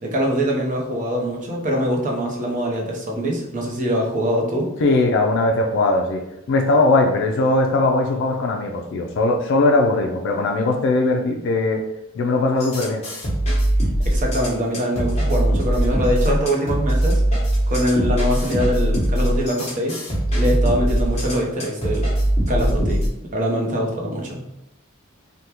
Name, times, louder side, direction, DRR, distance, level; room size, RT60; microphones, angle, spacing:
voice 1, 0.0-4.7 14.0-17.2 17.7-20.0 20.3-22.1 22.5-24.4, equal, 40° right, -1 dB, 0.6 m, -23 dB
voice 2, 4.8-11.8 12.1-13.0, left 2 dB, 65° left, 3 dB, 0.3 m, -19 dB
sound 1, 12.6-23.1, right 1 dB, 30° left, 1.0 m, -21 dB
3.4 x 2.2 x 2.8 m, 0.86 s
head